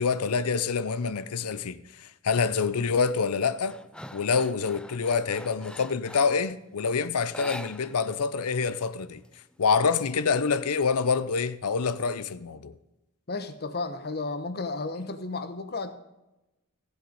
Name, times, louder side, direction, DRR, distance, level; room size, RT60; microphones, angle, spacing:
voice 1, 0.0-3.8 4.1-9.2 9.6-12.7, left 5 dB, 75° left, 0.6 m, -26 dB
sound 1, 2.3-2.7 3.1-6.5 7.2-8.2 8.5-8.6 9.0-9.9, left 1 dB, 5° left, 0.4 m, -44 dB
voice 2, 13.3-15.9, left 3 dB, 45° left, 1.1 m, -33 dB
16.0 x 8.0 x 5.2 m
head